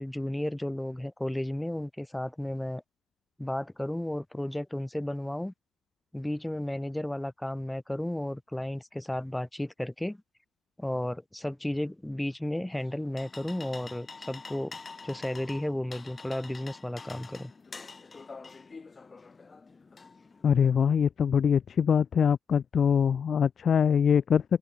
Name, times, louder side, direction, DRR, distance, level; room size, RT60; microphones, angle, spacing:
voice 1, 0.0-2.8 3.4-5.5 6.1-10.2 10.8-14.8 15.0-17.5, left 1 dB, 5° left, 4.8 m, -33 dB
sound 1, 12.7-20.7, left 4 dB, 30° left, 6.5 m, -46 dB
voice 2, 20.4-24.4, left 7 dB, 50° left, 0.4 m, -23 dB
cardioid pair, 90°, 0 cm